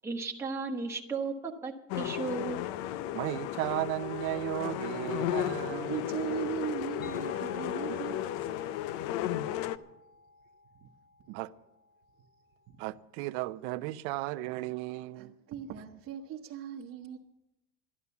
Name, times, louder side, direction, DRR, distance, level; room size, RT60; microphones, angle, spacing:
voice 1, 0.0-2.6, right 4 dB, 10° right, 1.2 m, -35 dB
sound 1, 1.9-9.8, left 12 dB, 65° left, 0.6 m, -34 dB
voice 2, 3.1-6.0 7.9-8.0 11.3-11.5 12.8-15.3, right 18 dB, 80° right, 0.7 m, -35 dB
voice 3, 5.6-8.7 10.8-10.9 12.7-12.8 15.1-17.2, right 10 dB, 40° right, 1.0 m, -39 dB
sound 2, 7.0-12.5, left 2 dB, 30° left, 1.0 m, -52 dB
13.0 x 11.0 x 7.0 m
cardioid pair, 165°, 33 cm